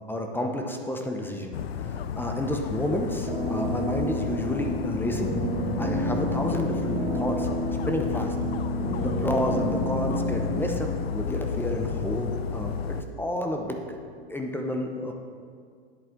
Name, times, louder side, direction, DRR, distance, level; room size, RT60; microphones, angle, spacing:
voice 1, 0.1-5.3 5.8-7.5 7.9-8.4 9.0-14.0 14.3-15.1, left 1 dB, 5° left, 3 dB, 0.8 m, -30 dB
Dog, 1.5-13.0, left 7 dB, 85° left, 0.5 m, -32 dB
sound 1, 3.3-10.6, equal, 15° right, 1.9 m, -30 dB
10.0 x 8.1 x 3.8 m, 2.1 s
hypercardioid pair, 110°, 30 cm